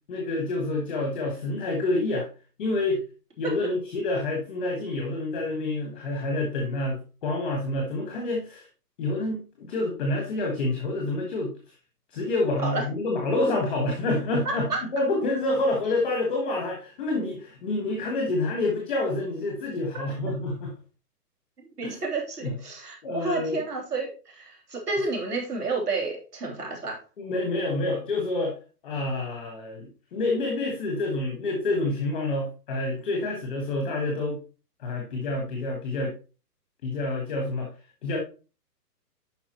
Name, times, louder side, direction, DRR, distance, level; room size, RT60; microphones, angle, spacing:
voice 1, 0.1-2.3 2.6-3.0 3.4-8.7 9.0-11.5 12.1-20.7 21.8-22.0 22.4-22.5 23.0-23.6 27.2-28.6 28.8-34.4 34.8-36.1 36.8-37.7 38.0-38.2, left 2 dB, 5° left, 1 dB, 0.7 m, -28 dB
voice 2, 21.8-27.0, right 3 dB, 70° right, 0 dB, 3.3 m, -30 dB
8.7 x 5.6 x 2.9 m, 0.33 s
hypercardioid pair, 165°, 49 cm